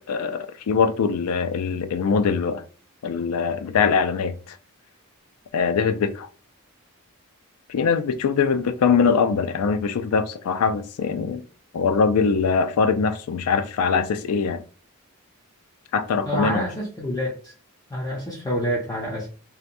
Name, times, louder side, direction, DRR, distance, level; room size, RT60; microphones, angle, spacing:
voice 1, 0.1-2.6 3.0-4.6 5.5-6.3 7.7-11.4 11.7-14.6 15.9-16.7, left 5 dB, 85° left, 0.4 m, -22 dB
voice 2, 16.3-17.5 17.9-19.3, equal, 15° left, 0.5 m, -27 dB
2.8 x 2.2 x 2.5 m
head